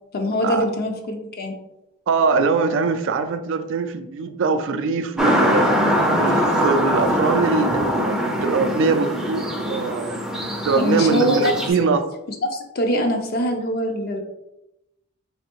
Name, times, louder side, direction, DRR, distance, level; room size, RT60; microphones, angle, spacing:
voice 1, 0.1-1.5 10.8-11.9 12.4-14.2, equal, 45° left, 4 dB, 0.5 m, -23 dB
voice 2, 2.1-5.7 6.1-10.2 10.6-12.1, right 4 dB, 60° right, 9 dB, 0.3 m, -22 dB
sound 1, 5.2-11.7, equal, 5° right, 0.5 m, -22 dB
3.5 x 3.2 x 2.9 m, 0.90 s
head